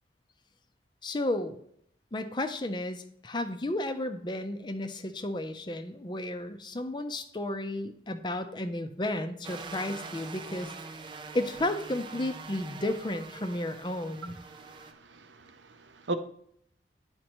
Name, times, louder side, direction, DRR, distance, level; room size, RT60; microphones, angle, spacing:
voice 1, 1.0-1.6 2.1-10.7 11.3-14.4, left 1 dB, 25° left, 8 dB, 0.5 m, -33 dB
sound 1, 9.4-14.9, right 4 dB, 25° right, 0.4 m, -44 dB
voice 2, 14.5-16.1, right 2 dB, 90° right, 8 dB, 0.7 m, -38 dB
10.5 x 4.4 x 3.0 m, 0.69 s
head